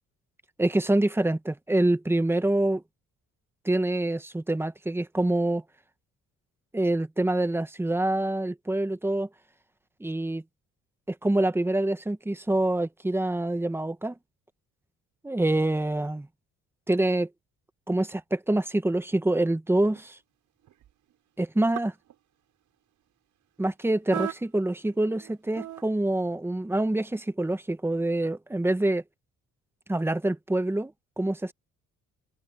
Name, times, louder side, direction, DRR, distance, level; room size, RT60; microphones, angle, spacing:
voice 1, 0.6-2.8 3.6-5.6 6.7-9.3 10.0-10.4 11.1-14.1 15.2-16.3 16.9-17.3 17.9-20.2 21.4-21.9 23.6-29.0 29.9-31.5, right 1 dB, 10° right, 1.2 m, -26 dB
sound 1, 19.9-20.1 20.7-21.1 21.7-22.1 24.1-24.7 24.9-25.8, right 12 dB, 75° right, 6.1 m, -36 dB
cardioid pair, 90°, 30 cm